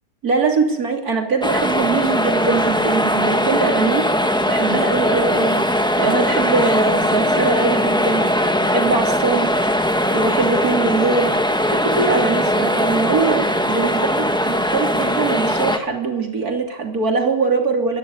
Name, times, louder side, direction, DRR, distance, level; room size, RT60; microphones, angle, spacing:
voice 1, 0.2-4.1 4.5-5.6 6.0-8.3 8.7-9.5 10.1-11.3 11.7-18.0, right 4 dB, 80° right, 4 dB, 3.5 m, -22 dB
sound 1, 1.4-15.8, equal, 5° left, 1.4 m, -19 dB
22.5 x 13.5 x 9.6 m, 0.96 s
omnidirectional pair, 1.6 m